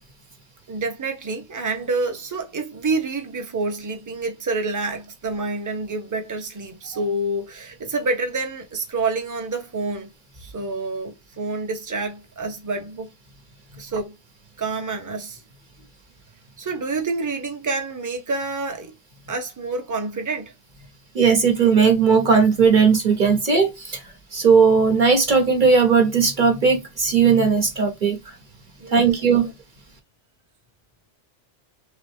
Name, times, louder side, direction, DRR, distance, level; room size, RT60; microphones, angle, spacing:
voice 1, 0.7-10.1 10.4-13.1 13.8-14.1 14.6-15.4 16.6-18.9 19.3-20.5 28.8-29.5, right 3 dB, 20° right, 0.8 m, -28 dB
voice 2, 21.1-24.0 24.3-28.2 28.9-29.5, right 5 dB, 45° right, 1.3 m, -17 dB
3.8 x 3.2 x 3.5 m
omnidirectional pair, 1.2 m